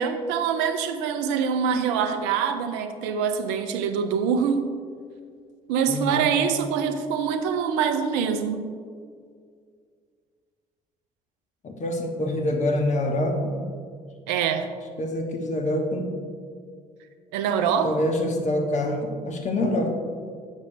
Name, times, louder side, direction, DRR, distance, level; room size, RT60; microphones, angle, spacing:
voice 1, 0.0-4.7 5.7-8.7 14.3-14.7 17.3-17.9, right 7 dB, 70° right, 8 dB, 0.5 m, -24 dB
voice 2, 5.9-6.3 11.6-13.6 15.0-16.1 17.8-19.9, left 1 dB, 40° left, 2 dB, 1.1 m, -26 dB
7.3 x 6.1 x 2.6 m, 2.1 s
hypercardioid pair, 50°, 19 cm